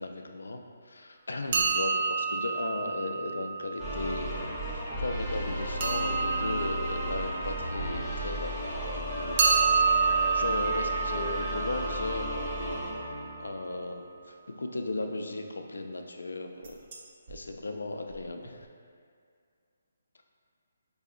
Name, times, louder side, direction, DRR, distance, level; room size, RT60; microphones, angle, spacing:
voice 1, 0.0-9.4 10.3-13.1 13.4-16.8 17.3-18.7, left 2 dB, 85° left, 4 dB, 0.3 m, -36 dB
sound 1, 1.5-4.2 5.8-8.5 9.4-13.2 16.6-17.0 17.3-17.4 18.1-18.2 18.5-18.6, right 5 dB, 40° right, 0.4 m, -29 dB
sound 2, 3.8-13.8, equal, 5° left, 0.6 m, -34 dB
3.8 x 2.7 x 2.4 m, 2.2 s
hypercardioid pair, 155°, 0 cm